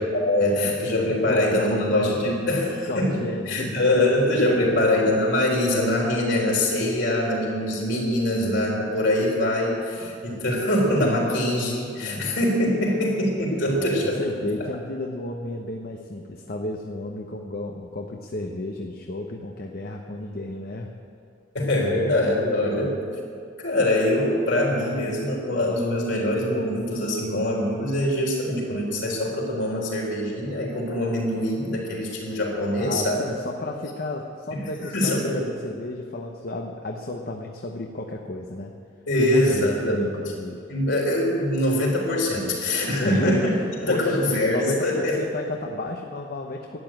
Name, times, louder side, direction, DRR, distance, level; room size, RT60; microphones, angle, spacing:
voice 1, 0.0-2.7 3.0-14.5 21.5-23.0 23.6-33.2 34.6-35.4 39.1-40.0 40.7-43.5 43.8-45.2, left 1 dB, 70° left, -2 dB, 3.9 m, -23 dB
voice 2, 1.3-2.5 2.8-3.8 4.5-5.0 10.0-10.2 12.0-12.4 13.8-20.9 22.6-23.0 32.8-38.7 39.2-40.6 43.0-46.8, left 2 dB, 50° left, 2 dB, 0.9 m, -32 dB
12.5 x 9.4 x 9.0 m, 2.4 s
head